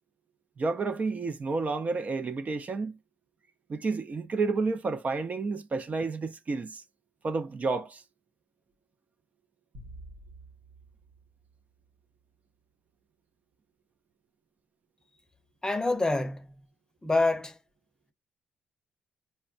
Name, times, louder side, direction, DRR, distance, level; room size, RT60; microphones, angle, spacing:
voice 1, 0.6-2.9 3.7-6.8 7.2-8.0, right 3 dB, 40° right, 0.5 m, -30 dB
sound 1, 9.7-12.2, right 1 dB, 80° right, 1.0 m, -50 dB
voice 2, 15.6-16.5 17.0-17.6, left 2 dB, 20° left, 0.7 m, -26 dB
4.3 x 2.2 x 2.4 m
supercardioid pair, 65°, 4 cm